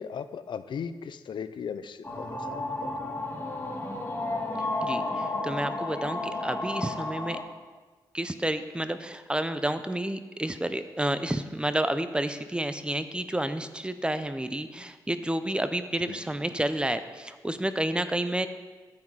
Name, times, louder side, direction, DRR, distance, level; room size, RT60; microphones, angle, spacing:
voice 1, 0.0-2.9 16.1-16.2, left 7 dB, 70° left, 13 dB, 0.6 m, -37 dB
sound 1, 2.0-7.4, left 2 dB, 25° left, 2.0 m, -32 dB
voice 2, 4.8-7.4 8.1-18.5, right 1 dB, 10° right, 11 dB, 0.6 m, -30 dB
10.5 x 8.6 x 4.8 m, 1.3 s
cardioid pair, 75°, 8 cm